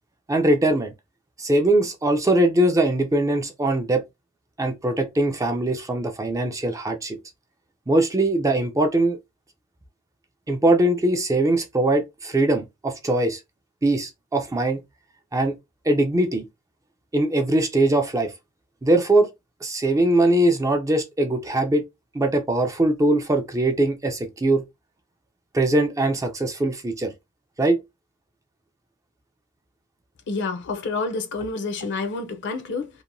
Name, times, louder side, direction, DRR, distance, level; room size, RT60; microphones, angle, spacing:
voice 1, 0.3-0.9 1.4-4.0 4.6-7.2 7.9-9.2 10.5-13.4 13.8-14.8 15.3-15.6 15.9-16.4 17.1-18.3 18.8-19.3 19.6-21.8 22.1-24.6 25.5-27.1 27.6-27.8, right 1 dB, 15° right, 0.4 m, -21 dB
voice 2, 30.3-32.9, left 3 dB, 55° left, 0.6 m, -28 dB
2.8 x 2.1 x 2.5 m
head